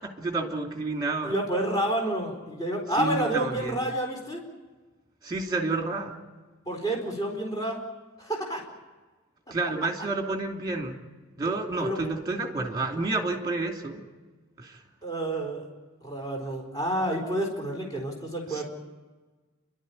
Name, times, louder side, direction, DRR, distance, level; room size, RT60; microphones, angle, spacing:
voice 1, 0.0-1.3 2.9-3.8 5.2-6.2 9.5-11.0 11.4-14.0 14.6-14.8 18.5-18.6, right 3 dB, 20° right, 3 dB, 2.8 m, -30 dB
voice 2, 1.2-4.4 6.7-7.8 8.2-8.6 9.5-9.6 11.8-12.0 15.0-15.7 16.0-18.6, right 1 dB, 15° left, -1 dB, 4.3 m, -29 dB
30.0 x 12.5 x 10.0 m, 1.3 s
head